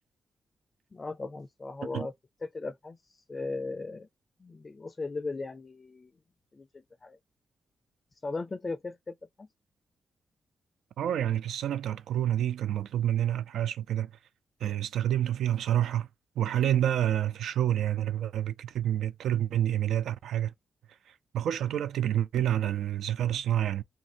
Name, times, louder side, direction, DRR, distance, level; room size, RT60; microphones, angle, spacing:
voice 1, 0.9-2.1 2.4-4.1 4.4-6.1 6.5-7.2 8.2-9.5, left 3 dB, 40° left, 0.4 m, -37 dB
voice 2, 11.0-14.1 14.6-16.1 16.4-20.5 21.3-23.8, right 11 dB, 80° right, 0.3 m, -28 dB
2.6 x 2.6 x 2.9 m
supercardioid pair, 40°, 0 cm